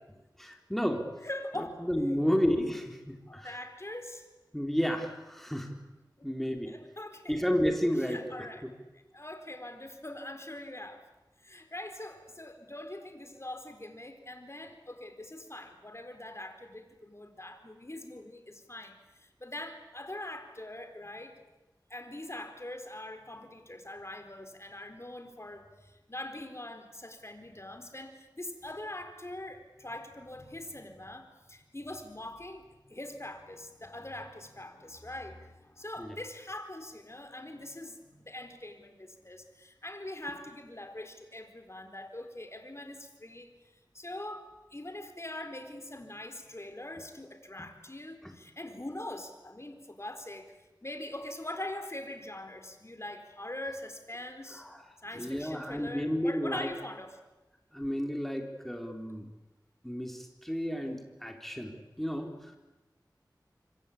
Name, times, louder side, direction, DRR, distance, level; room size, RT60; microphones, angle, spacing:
voice 1, 0.4-1.1 1.6-3.5 4.5-5.7 6.2-6.7 7.3-8.2 8.6-8.7 36.0-36.1 47.6-47.7 48.2-48.3 54.5-54.8 55.1-56.7 57.7-59.3 59.8-62.5, equal, 5° left, 3 dB, 3.9 m, -31 dB
voice 2, 1.2-1.8 3.3-4.3 6.2-6.3 6.6-7.4 8.1-8.6 9.1-11.1 11.4-21.4 21.9-43.5 43.9-50.5 50.8-54.6 55.0-57.2, left 1 dB, 35° left, 7 dB, 4.3 m, -43 dB
26.0 x 24.5 x 8.7 m, 1.0 s
wide cardioid pair, 45°, 8 cm